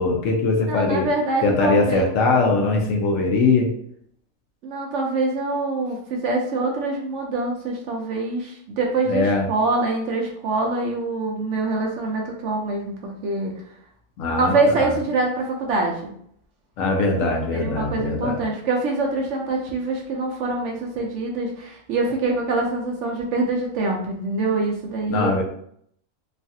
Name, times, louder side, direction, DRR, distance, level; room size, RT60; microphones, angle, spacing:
voice 1, 0.0-1.1 1.4-3.7 9.1-9.5 14.2-14.5 16.8-18.4 25.1-25.4, left 3 dB, 70° left, 1 dB, 1.0 m, -21 dB
voice 2, 0.7-2.1 4.6-13.5 14.4-16.0 17.5-25.4, right 3 dB, 65° right, 0 dB, 0.8 m, -24 dB
3.1 x 2.3 x 2.7 m, 0.67 s
omnidirectional pair, 1.5 m